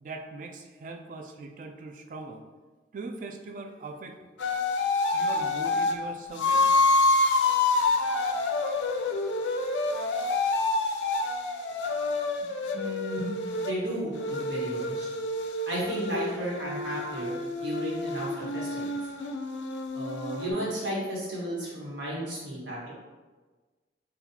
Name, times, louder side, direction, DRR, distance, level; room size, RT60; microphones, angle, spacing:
voice 1, 0.0-2.4 2.9-4.2 5.1-6.7 8.1-8.2, right 3 dB, 45° right, 5 dB, 0.3 m, -40 dB
sound 1, 4.4-6.0 6.4-13.7 14.2-20.5, left 3 dB, 85° left, 0.4 m, -27 dB
voice 2, 12.7-13.3 13.6-15.1 15.7-19.0 19.9-22.9, right 1 dB, 85° right, -6 dB, 1.2 m, -34 dB
4.0 x 2.3 x 2.7 m, 1.3 s
head